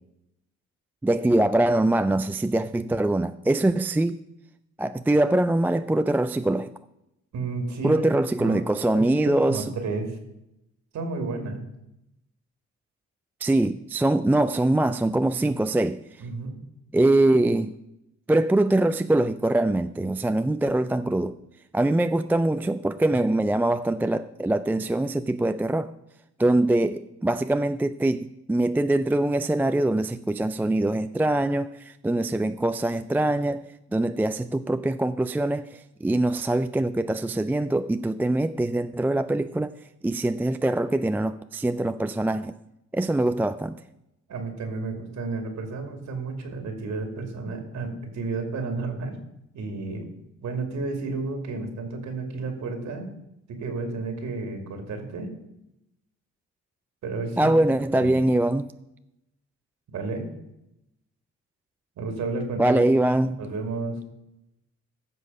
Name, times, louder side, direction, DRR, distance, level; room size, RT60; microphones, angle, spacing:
voice 1, 1.0-4.2 4.8-6.7 7.8-9.7 13.4-16.0 16.9-17.7 18.3-21.3 21.7-25.9 26.4-33.6 33.9-39.7 40.0-42.5 42.9-43.8 57.4-58.7 62.6-63.4, right 1 dB, 5° right, 0.3 m, -23 dB
voice 2, 7.3-8.0 8.4-8.7 8.9-10.2 10.9-11.6 16.2-16.6 44.3-49.2 49.5-50.1 50.4-53.1 53.5-55.3 57.0-57.5 57.9-58.1 59.9-60.3 62.0-62.8 63.4-64.0, right 3 dB, 70° right, 2.4 m, -32 dB
15.5 x 6.3 x 5.5 m
cardioid pair, 90°, 30 cm